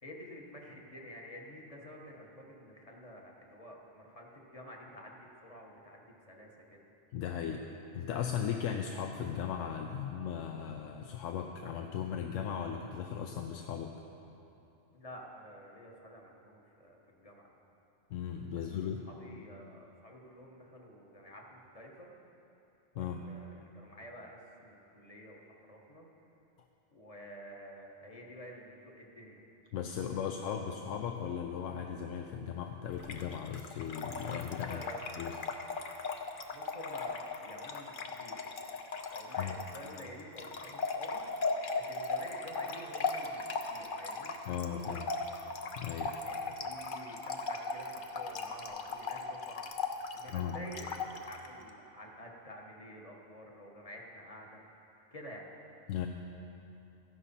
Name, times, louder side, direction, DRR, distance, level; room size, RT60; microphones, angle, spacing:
voice 1, 0.0-6.8 14.9-17.5 18.5-22.1 23.0-26.1 26.9-29.4 34.6-35.0 36.5-38.4 39.1-41.3 41.7-44.4 46.2-49.8 50.1-54.6 55.1-55.5, equal, 30° left, -1 dB, 1.3 m, -50 dB
voice 2, 7.1-7.6 7.9-13.9 18.1-19.0 22.9-23.2 29.7-34.8 35.2-35.4 39.4-39.5 44.5-45.2 45.8-46.1 50.3-50.6 55.9-56.1, left 8 dB, 85° left, 3 dB, 1.0 m, -37 dB
Trickle dribble / Fill (with liquid), 33.0-51.5, left 4 dB, 50° left, 0.8 m, -38 dB
14.0 x 11.0 x 4.2 m, 2.9 s
omnidirectional pair, 1.3 m